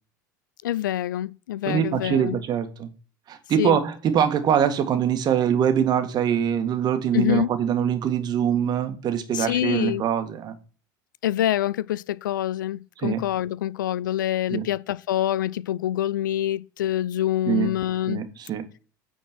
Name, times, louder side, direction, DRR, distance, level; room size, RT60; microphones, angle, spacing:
voice 1, 0.6-2.4 3.6-3.8 7.1-7.5 9.3-10.0 11.2-18.2, left 12 dB, 85° left, 0.4 m, -26 dB
voice 2, 1.7-2.9 3.3-10.5 13.0-13.2 14.5-14.6 17.5-17.7 18.1-18.6, right 9 dB, 45° right, 1.8 m, -23 dB
9.1 x 4.4 x 6.1 m
hypercardioid pair, 90°, 10 cm